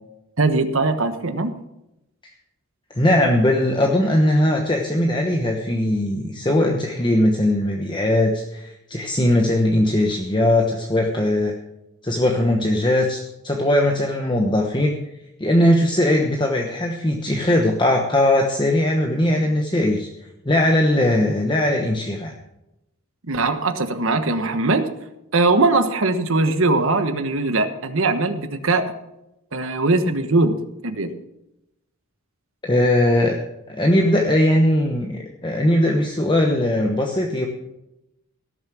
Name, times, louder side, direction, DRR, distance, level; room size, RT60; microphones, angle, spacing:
voice 1, 0.4-1.5 23.3-24.9 25.3-28.9 29.5-30.6 30.8-31.1, right 3 dB, 65° right, 9 dB, 1.2 m, -20 dB
voice 2, 2.9-11.5 12.0-15.0 15.4-20.1 20.4-22.3 32.6-33.4 33.7-37.5, left 1 dB, 20° left, 1 dB, 1.1 m, -19 dB
17.5 x 7.2 x 6.1 m, 0.90 s
head